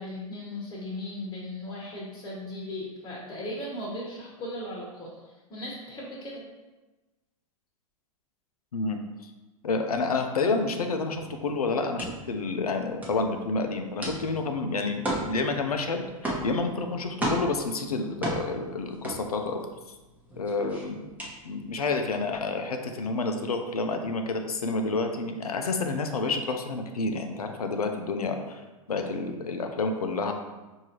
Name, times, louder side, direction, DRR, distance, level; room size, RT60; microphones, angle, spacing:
voice 1, 0.0-6.4, left 1 dB, 25° left, -5 dB, 1.2 m, -37 dB
voice 2, 9.6-19.6 20.4-20.9 21.4-28.6 28.9-30.3, left 3 dB, 90° left, 5 dB, 0.5 m, -29 dB
sound 1, 11.1-19.8 20.2-22.0, right 1 dB, 10° right, 0.9 m, -34 dB
4.6 x 2.7 x 2.9 m, 1.2 s
hypercardioid pair, 105°, 19 cm